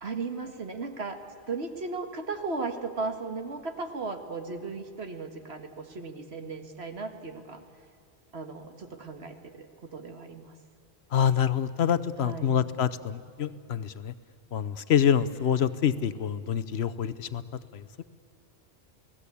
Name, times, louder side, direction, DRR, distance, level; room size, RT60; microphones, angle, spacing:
voice 1, 0.0-1.2 1.5-7.6 8.3-10.5 12.2-12.6, right 3 dB, 65° right, 6 dB, 1.9 m, -36 dB
voice 2, 11.1-14.1 14.5-17.4 17.7-18.0, left 8 dB, 70° left, 14 dB, 1.0 m, -26 dB
29.0 x 18.0 x 8.4 m, 2.3 s
omnidirectional pair, 1.2 m